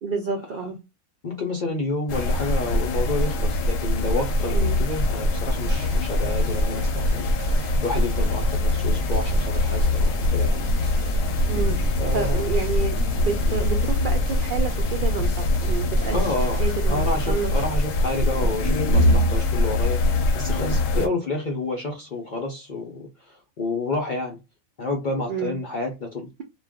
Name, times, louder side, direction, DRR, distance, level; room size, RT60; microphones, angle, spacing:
voice 1, 0.0-0.8 4.5-4.8 11.5-11.8 12.1-16.2 16.6-17.5 18.4-18.6 20.9-21.1 25.3-25.5, right 5 dB, 80° right, 0.4 m, -29 dB
voice 2, 1.2-7.3 7.8-10.6 12.0-12.4 16.1-24.4 24.8-26.3, left 2 dB, 55° left, 0.5 m, -29 dB
sound 1, 2.1-21.1, left 1 dB, 75° left, 0.9 m, -23 dB
sound 2, 5.6-17.6, left 2 dB, 55° right, 0.9 m, -38 dB
2.4 x 2.2 x 3.4 m
omnidirectional pair, 1.4 m